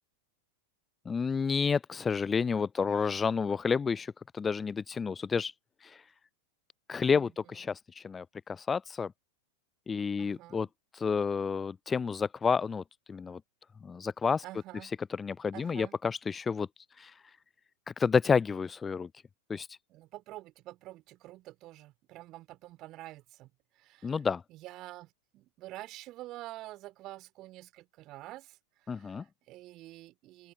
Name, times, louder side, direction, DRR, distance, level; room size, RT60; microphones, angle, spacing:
voice 1, 1.1-5.5 6.9-9.1 9.9-10.7 10.9-13.4 13.8-14.4 15.2-16.7 17.0-17.1 18.0-19.1 19.5-19.7 24.0-24.4 28.9-29.2, left 5 dB, 15° left, 0.3 m, -30 dB
voice 2, 10.2-10.7 14.4-15.0 15.5-16.0 19.9-23.5 23.8-24.1 24.5-30.5, right 17 dB, 35° right, 4.1 m, -48 dB
open air
figure-of-eight pair, 90°, 0 cm